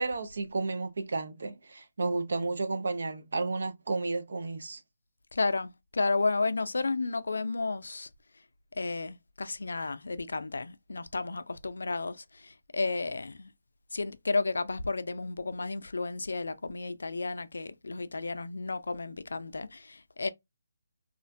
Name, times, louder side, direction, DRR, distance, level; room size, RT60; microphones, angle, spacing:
voice 1, 0.0-4.8, right 3 dB, 65° right, 0.4 m, -32 dB
voice 2, 5.3-8.1 8.7-13.5 13.9-20.3, left 3 dB, 80° left, 0.3 m, -32 dB
2.4 x 2.1 x 2.4 m
hypercardioid pair, 170°, 0 cm